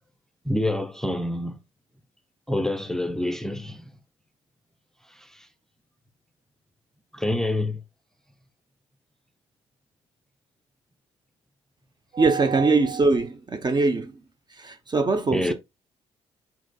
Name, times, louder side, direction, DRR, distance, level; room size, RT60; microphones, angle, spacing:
voice 1, 0.4-1.6 2.5-3.9 5.2-5.5 7.1-7.8 15.3-15.5, left 1 dB, 5° left, 0.7 m, -27 dB
voice 2, 12.1-14.1 14.6-15.5, right 3 dB, 30° right, 0.7 m, -22 dB
4.9 x 4.0 x 2.2 m
hypercardioid pair, 55°, 14 cm